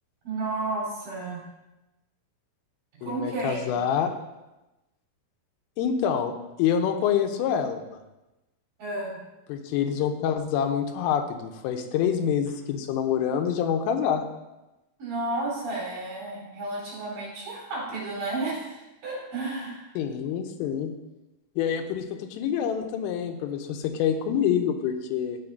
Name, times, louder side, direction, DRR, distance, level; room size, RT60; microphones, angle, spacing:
voice 1, 0.2-1.4 3.0-3.7 8.8-9.2 15.0-19.9, right 2 dB, 45° right, -6 dB, 4.9 m, -32 dB
voice 2, 3.0-4.1 5.8-6.3 6.6-7.8 9.5-14.2 20.0-20.9 21.6-25.4, left 8 dB, 85° left, 5 dB, 3.3 m, -26 dB
11.5 x 7.9 x 2.6 m, 1.0 s
omnidirectional pair, 5.7 m